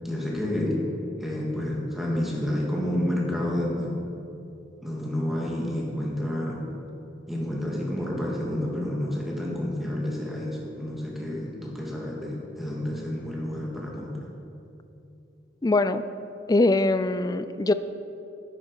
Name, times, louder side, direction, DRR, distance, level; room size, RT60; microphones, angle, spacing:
voice 1, 0.0-0.8 1.2-4.0 4.8-6.6 7.3-14.3, left 1 dB, ahead, -3 dB, 2.0 m, -29 dB
voice 2, 15.6-16.0 16.5-17.7, left 2 dB, 20° left, 12 dB, 0.4 m, -22 dB
11.0 x 9.9 x 4.8 m, 2.7 s
head